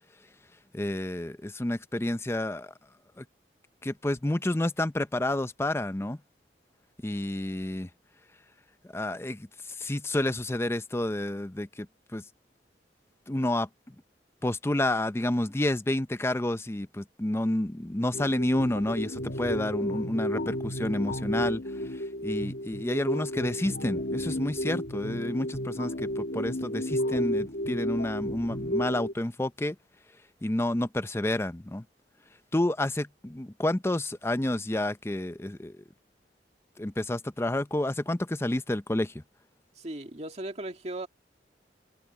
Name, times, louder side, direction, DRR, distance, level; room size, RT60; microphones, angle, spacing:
voice 1, 0.7-2.7 3.2-3.3 3.8-6.2 7.0-7.9 8.9-9.5 9.8-11.9 12.1-12.2 13.3-13.9 14.4-21.6 21.9-29.8 30.4-31.8 32.5-35.8 36.8-39.2, left 1 dB, 15° left, 0.6 m, -30 dB
sound 1, 18.1-29.1, equal, 70° left, 2.5 m, -32 dB
voice 2, 39.8-41.1, right 1 dB, 40° right, 2.3 m, -37 dB
head